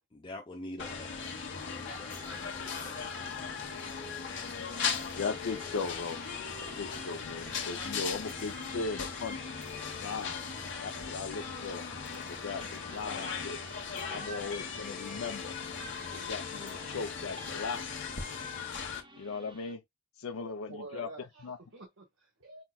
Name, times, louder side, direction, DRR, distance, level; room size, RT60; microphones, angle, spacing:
voice 1, 0.1-3.4, left 1 dB, 25° left, 0.5 m, -47 dB
sound 1, 0.8-19.0, left 6 dB, 60° left, 1.1 m, -38 dB
sound 2, 2.1-19.8, right 2 dB, 25° right, 0.6 m, -54 dB
voice 2, 5.2-6.2 6.8-9.5 10.0-11.9 12.2-13.6 14.1-15.6 16.0-18.2 19.2-19.8 20.2-21.1 21.4-21.6, left 4 dB, 80° left, 0.5 m, -38 dB
voice 3, 20.7-22.6, right 2 dB, 80° right, 1.3 m, -48 dB
5.5 x 2.2 x 2.3 m
head